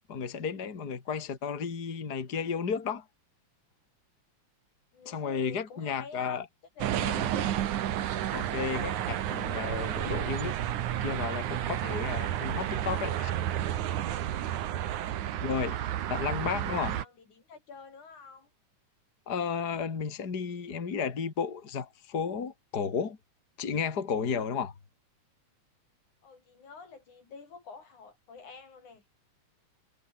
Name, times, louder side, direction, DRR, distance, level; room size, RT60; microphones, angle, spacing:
voice 1, 0.1-3.0 5.1-6.4 7.0-7.3 8.3-10.6 11.0-13.3 15.4-15.8 16.1-17.0 19.3-23.2 23.6-24.7, left 6 dB, 35° left, 2.8 m, -33 dB
voice 2, 4.9-6.4 6.8-7.6 15.6-18.5 26.2-29.0, left 5 dB, 80° left, 6.3 m, -49 dB
sound 1, 6.8-17.1, right 11 dB, 80° right, 2.9 m, -31 dB
omnidirectional pair, 3.4 m